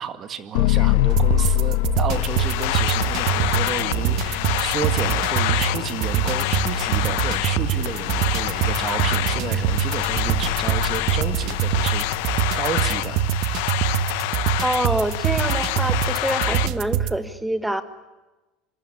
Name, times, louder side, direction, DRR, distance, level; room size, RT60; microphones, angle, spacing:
voice 1, 0.0-12.0 12.5-13.9, right 7 dB, 25° right, 10 dB, 2.0 m, -32 dB
sound 1, 0.5-12.7, left 18 dB, 85° left, 1.3 m, -27 dB
sound 2, 1.1-17.2, right 10 dB, 45° right, 1.3 m, -25 dB
sound 3, 2.1-16.7, left 18 dB, 70° left, 1.1 m, -27 dB
voice 2, 14.6-17.8, right 1 dB, 5° right, 10 dB, 1.7 m, -26 dB
26.5 x 26.0 x 8.7 m, 1.1 s
cardioid pair, 165°, 0 cm